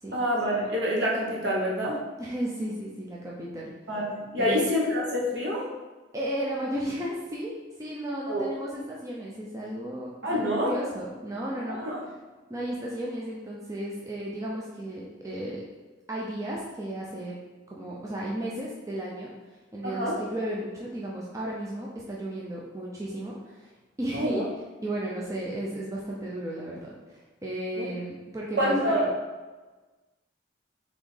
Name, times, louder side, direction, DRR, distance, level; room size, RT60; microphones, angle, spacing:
voice 1, 0.1-2.0 3.9-5.7 8.3-8.5 10.2-10.7 11.7-12.0 19.8-20.2 24.1-24.4 27.8-27.9 28.6-29.0, equal, 60° right, -4 dB, 1.1 m, -27 dB
voice 2, 2.2-3.7 4.4-4.6 6.1-7.5 7.8-11.9 12.5-15.6 16.1-17.3 17.7-19.3 19.7-23.7 24.0-24.5 24.8-29.1, right 1 dB, 15° right, -4 dB, 0.4 m, -34 dB
4.2 x 3.4 x 3.3 m, 1.3 s
head